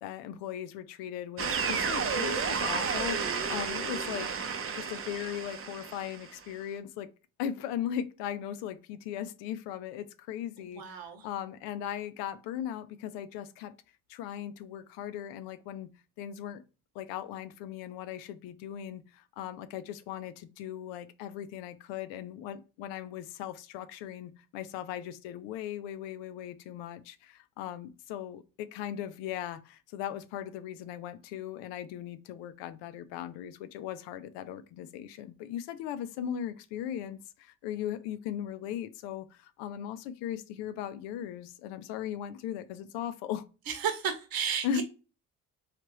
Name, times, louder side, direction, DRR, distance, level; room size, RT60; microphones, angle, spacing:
voice 1, 0.0-4.3 4.7-7.1 7.4-13.7 14.1-15.9 16.2-16.6 16.9-43.4 44.6-44.8, left 10 dB, 75° left, 0.6 m, -38 dB
sound 1, 1.4-6.3, right 5 dB, 30° right, 0.6 m, -32 dB
voice 2, 10.6-11.3 43.7-44.8, right 7 dB, 55° right, 1.0 m, -33 dB
3.2 x 2.4 x 2.9 m
hypercardioid pair, 55°, 43 cm